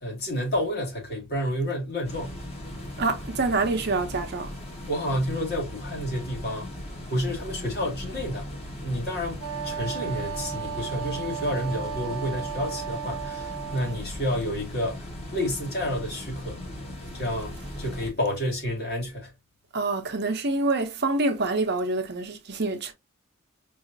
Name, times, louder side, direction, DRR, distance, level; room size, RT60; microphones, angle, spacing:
voice 1, 0.0-2.4 4.9-6.7 7.1-8.5 8.8-16.6 17.1-19.3, equal, 50° left, 2.2 m, -30 dB
sound 1, 2.0-18.1, left 1 dB, 30° left, 1.4 m, -38 dB
voice 2, 3.0-4.5 19.7-22.9, right 3 dB, 55° right, 0.8 m, -26 dB
Wind instrument woodwind instrument, 9.4-14.0, right 8 dB, 90° right, 0.7 m, -35 dB
4.8 x 2.8 x 2.7 m
head